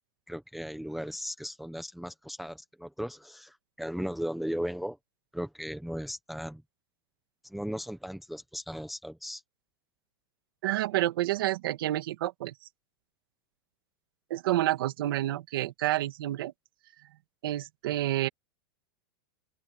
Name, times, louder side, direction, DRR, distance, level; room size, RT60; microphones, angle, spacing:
voice 1, 0.3-5.0 5.3-6.6 7.4-9.4, equal, ahead, 0.8 m, -37 dB
voice 2, 10.6-12.5 14.3-16.5 17.4-18.3, right 15 dB, 60° right, 2.3 m, -29 dB
open air
supercardioid pair, 175°, 13 cm